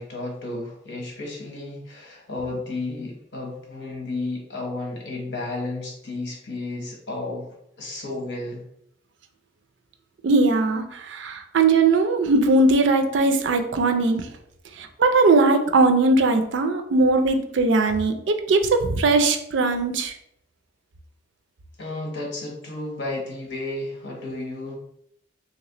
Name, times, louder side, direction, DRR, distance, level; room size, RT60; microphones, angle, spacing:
voice 1, 0.0-7.5 7.8-8.6 21.8-24.8, left 2 dB, 70° left, -1 dB, 1.0 m, -32 dB
voice 2, 10.2-14.3 14.8-20.1, right 3 dB, 80° right, 6 dB, 0.4 m, -20 dB
3.1 x 2.9 x 2.9 m, 0.73 s
head